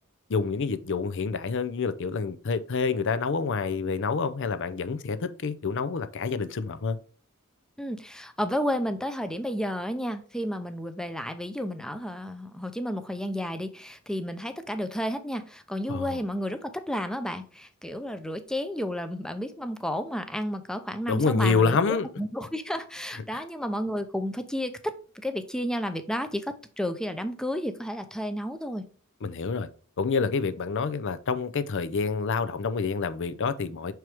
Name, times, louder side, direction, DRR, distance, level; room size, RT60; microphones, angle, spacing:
voice 1, 0.3-7.0 15.9-16.2 21.1-22.1 23.3-23.4 29.2-29.7 30.0-33.9, left 4 dB, 60° left, 0.6 m, -27 dB
voice 2, 7.8-28.8, equal, 5° left, 0.6 m, -32 dB
6.1 x 4.6 x 3.4 m
head